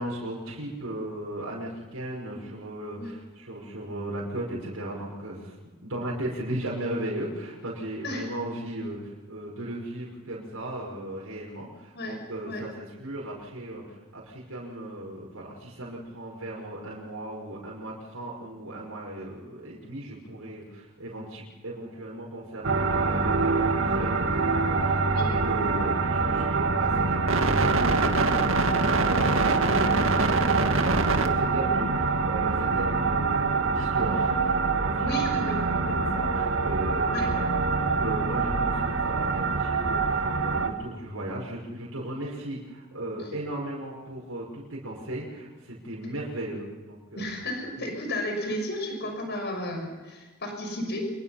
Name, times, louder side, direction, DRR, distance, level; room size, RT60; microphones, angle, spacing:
voice 1, 0.0-5.5 5.8-35.3 35.7-47.3, right 1 dB, 90° right, -4 dB, 5.7 m, -36 dB
sound 1, 22.6-40.7, right 4 dB, 70° right, 2.1 m, -24 dB
voice 2, 35.0-35.6 37.1-37.2 47.1-51.1, left 1 dB, 55° left, 3 dB, 6.2 m, -33 dB
27.0 x 22.5 x 5.8 m, 1.3 s
head